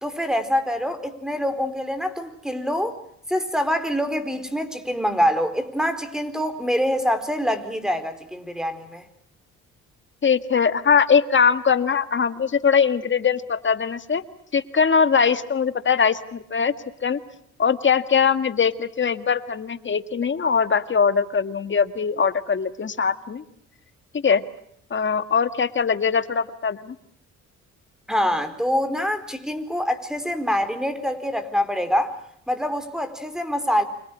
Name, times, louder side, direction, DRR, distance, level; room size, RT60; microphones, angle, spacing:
voice 1, 0.0-3.0 3.3-9.0 28.1-32.1 32.5-33.8, equal, ahead, 10 dB, 4.4 m, -25 dB
voice 2, 10.2-14.2 14.5-16.7 17.0-17.2 17.6-23.4 24.2-24.4 24.9-27.0, left 6 dB, 40° left, 11 dB, 1.9 m, -21 dB
29.0 x 27.0 x 6.2 m, 0.69 s
cardioid pair, 90°, 30 cm